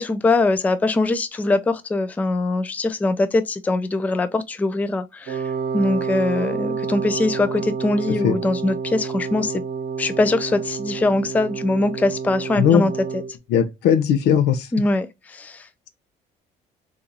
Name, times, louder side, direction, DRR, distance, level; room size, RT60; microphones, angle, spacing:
voice 1, 0.0-9.6 10.0-12.9 14.7-15.7, left 2 dB, 10° left, 0.3 m, -22 dB
Wind instrument woodwind instrument, 5.3-13.3, right 5 dB, 80° right, 0.7 m, -29 dB
voice 2, 13.5-14.7, left 8 dB, 80° left, 0.6 m, -18 dB
2.8 x 2.5 x 3.7 m
cardioid pair, 110°, 17 cm